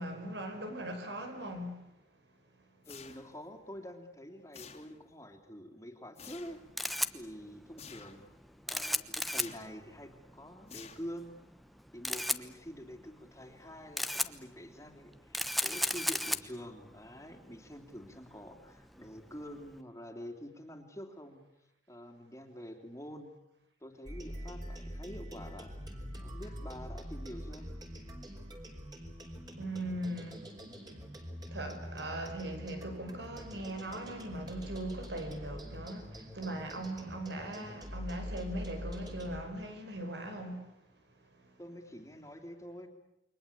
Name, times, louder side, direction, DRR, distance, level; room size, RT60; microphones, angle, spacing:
voice 1, 0.0-1.8 29.6-30.4 31.5-40.7, right 1 dB, 80° right, 6.1 m, -39 dB
sound 1, 2.8-3.5 4.5-5.2 6.1-6.7 7.8-8.3 9.3-9.8 10.7-11.4, left 6 dB, 35° left, 2.6 m, -51 dB
voice 2, 2.9-6.6 7.1-8.3 8.7-11.3 11.9-21.4 21.9-23.3 23.8-25.7 26.2-27.7 41.6-42.9, equal, 15° left, 3.0 m, -47 dB
Camera, 6.4-19.8, equal, ahead, 1.1 m, -37 dB
sound 2, 24.0-39.4, equal, 25° right, 5.1 m, -44 dB
29.5 x 23.5 x 8.5 m
head